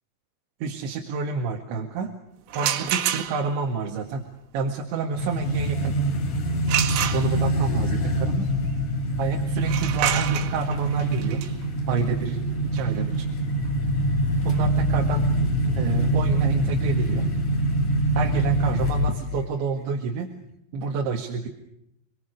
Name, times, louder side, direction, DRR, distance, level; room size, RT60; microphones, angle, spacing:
voice 1, 0.6-2.2 2.6-4.2 4.5-6.0 7.1-8.5 9.2-11.4 11.9-13.3 14.5-15.3 15.8-17.3 18.2-20.3 20.7-21.5, right 4 dB, 70° right, 2 dB, 4.0 m, -28 dB
sound 1, 2.5-3.7 6.7-7.7 9.6-15.3, right 11 dB, 85° right, 4.6 m, -29 dB
sound 2, 5.1-19.4, right 1 dB, 45° left, 3.6 m, -24 dB
28.0 x 22.5 x 6.6 m, 0.78 s
omnidirectional pair, 5.9 m